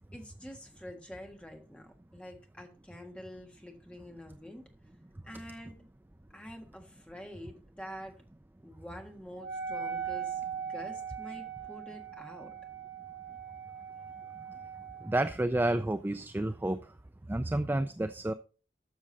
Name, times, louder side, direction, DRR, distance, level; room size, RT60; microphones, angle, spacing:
voice 1, 0.1-4.7 5.2-5.8 6.3-8.2 8.6-12.5, equal, 5° left, 3 dB, 1.6 m, -47 dB
Wind instrument woodwind instrument, 9.4-15.1, right 7 dB, 80° right, 3.7 m, -40 dB
voice 2, 15.0-16.9 17.3-18.3, right 1 dB, 10° right, 10 dB, 0.3 m, -30 dB
13.0 x 6.2 x 3.9 m, 0.36 s
head